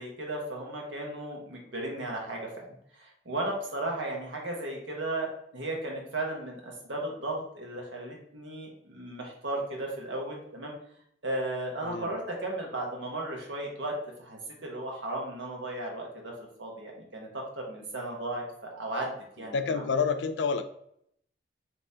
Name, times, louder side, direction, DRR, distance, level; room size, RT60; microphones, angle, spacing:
voice 1, 0.0-2.6 2.9-10.7 11.2-16.3 16.6-18.4 18.7-19.6, right 1 dB, 80° right, 0 dB, 1.2 m, -35 dB
voice 2, 19.5-20.6, left 5 dB, 70° left, 8 dB, 0.4 m, -28 dB
5.4 x 2.9 x 2.7 m, 0.71 s
head